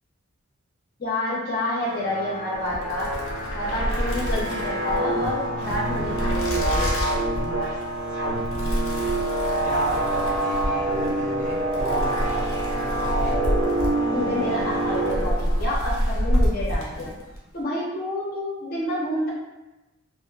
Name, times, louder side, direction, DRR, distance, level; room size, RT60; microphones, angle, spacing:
voice 1, 1.0-3.1 3.5-7.0 14.1-17.1 17.5-19.3, left 1 dB, 50° left, -4 dB, 0.7 m, -29 dB
sound 1, 1.7-15.8, right 1 dB, 85° right, 1.1 m, -27 dB
sound 2, 2.5-17.5, equal, 85° left, 0.6 m, -28 dB
voice 2, 9.6-13.4, right 2 dB, 40° right, -4 dB, 0.5 m, -34 dB
2.4 x 2.4 x 2.2 m, 1.0 s
head